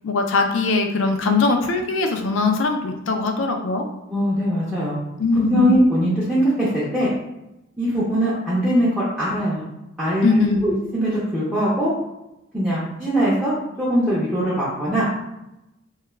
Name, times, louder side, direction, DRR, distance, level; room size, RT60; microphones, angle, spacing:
voice 1, 0.0-3.8 5.2-5.7 10.2-10.6, left 3 dB, 70° left, 4 dB, 0.4 m, -21 dB
voice 2, 4.1-5.0 5.5-7.1 7.8-9.6 10.0-11.9 12.5-15.1, equal, 5° right, -10 dB, 0.5 m, -21 dB
2.3 x 2.2 x 3.1 m, 0.92 s
head